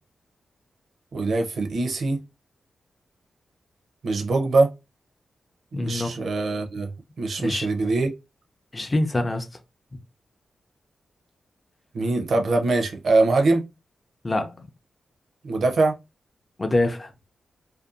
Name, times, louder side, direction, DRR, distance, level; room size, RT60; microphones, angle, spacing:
voice 1, 1.1-2.2 4.0-4.7 5.7-6.9 7.2-8.1 11.9-13.6 15.4-15.9, right 3 dB, 70° right, 0.6 m, -22 dB
voice 2, 5.7-6.1 7.4-7.7 8.7-9.5 14.2-14.7 16.6-17.1, left 2 dB, 30° left, 0.4 m, -25 dB
2.6 x 2.2 x 2.4 m
cardioid pair, 70°, 0 cm